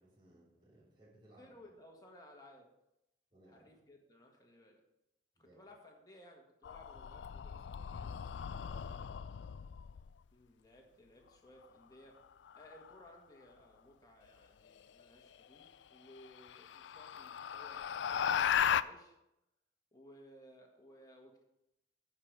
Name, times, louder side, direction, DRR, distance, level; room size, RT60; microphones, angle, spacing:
voice 1, 0.0-1.5 3.3-3.7 5.4-5.6 8.7-9.5, right 1 dB, 25° right, -7 dB, 3.3 m, -63 dB
voice 2, 1.4-2.7 3.5-4.8 5.4-9.1 10.3-12.2 12.5-19.1 19.9-21.4, left 1 dB, 20° left, 0 dB, 1.7 m, -59 dB
sound 1, 6.6-10.1 12.5-12.9 15.0-15.1 15.6-15.7 16.2-18.8, left 8 dB, 90° left, 0.4 m, -36 dB
11.0 x 5.0 x 6.6 m, 0.86 s
head